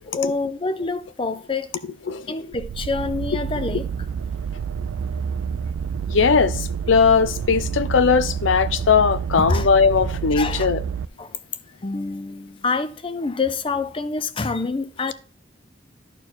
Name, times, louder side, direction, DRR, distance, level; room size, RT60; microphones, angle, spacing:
voice 1, 0.1-1.7 2.3-3.9 9.4-9.7 10.3-10.7 11.2-11.3 11.8-15.1, left 3 dB, 25° left, 0.4 m, -26 dB
sound 1, 2.5-11.1, right 7 dB, 90° right, 0.3 m, -28 dB
voice 2, 6.1-10.8, left 5 dB, 80° left, 0.6 m, -19 dB
11.5 x 4.5 x 4.3 m
head